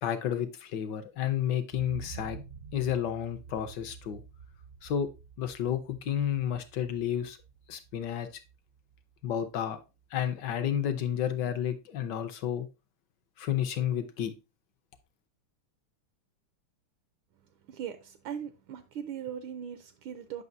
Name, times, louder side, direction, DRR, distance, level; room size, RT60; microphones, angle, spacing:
voice 1, 0.0-2.4 2.7-4.2 4.8-5.1 5.4-7.4 7.7-8.4 9.2-9.8 10.1-12.7 13.4-14.4, left 10 dB, 70° left, 1.1 m, -31 dB
sound 1, 1.7-9.6 10.0-10.1, right 6 dB, 60° right, 0.6 m, -49 dB
voice 2, 17.7-20.4, right 8 dB, 75° right, 1.4 m, -39 dB
8.3 x 5.7 x 2.6 m
omnidirectional pair, 2.4 m